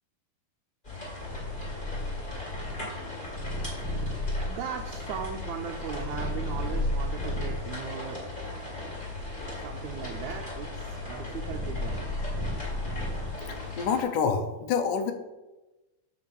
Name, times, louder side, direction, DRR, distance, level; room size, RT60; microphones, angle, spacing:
sound 1, 0.8-14.0, left 2 dB, 15° left, 2.3 m, -38 dB
Purr, 1.2-7.7 8.4-13.6, left 1 dB, 5° right, 2.2 m, -34 dB
voice 1, 3.8-4.1 4.4-8.2 9.5-12.1, right 7 dB, 75° right, 1 dB, 1.9 m, -38 dB
voice 2, 13.8-15.1, left 6 dB, 80° left, 7 dB, 2.3 m, -26 dB
7.5 x 5.7 x 6.1 m, 1.1 s
omnidirectional pair, 3.8 m